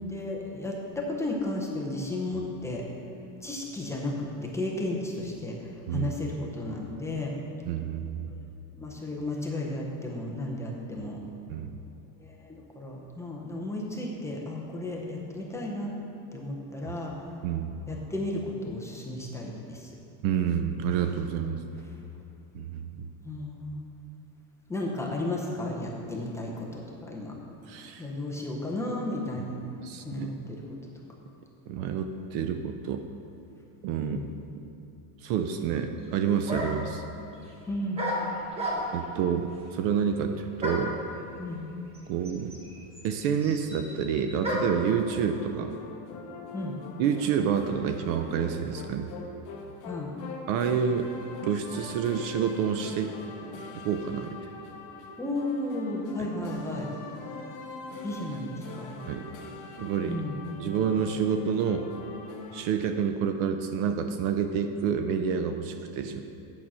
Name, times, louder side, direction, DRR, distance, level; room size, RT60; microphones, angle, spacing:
voice 1, 0.0-2.8 3.4-5.5 5.9-7.3 8.8-11.2 12.2-15.9 16.3-17.1 17.9-19.9 23.2-23.8 24.7-27.3 28.0-29.6 30.0-30.6 34.0-34.3 37.7-38.0 41.4-41.7 46.5-46.8 49.9-50.1 55.2-56.9 58.0-59.0 60.1-60.4, left 1 dB, 5° left, -3 dB, 0.5 m, -33 dB
voice 2, 7.7-8.3 11.5-11.7 16.9-17.0 17.4-17.8 20.2-21.6 22.5-23.1 27.7-28.1 29.8-30.3 31.7-33.0 33.8-34.3 35.2-37.0 38.9-41.0 42.1-42.6 43.0-45.8 47.0-49.1 50.5-51.1 51.4-53.2 53.7-54.4 56.2-56.3 59.1-59.2 59.8-60.2 60.6-61.9 62.5-66.2, right 7 dB, 50° right, 7 dB, 0.4 m, -28 dB
sound 1, 36.0-36.1 36.5-36.9 38.0-39.1 40.6-41.0 41.9-42.0 42.2-44.9, equal, 15° right, 1.0 m, -32 dB
sound 2, 44.8-62.6, left 4 dB, 45° left, 1.0 m, -43 dB
8.8 x 6.2 x 5.4 m, 2.9 s
cardioid pair, 165°, 46 cm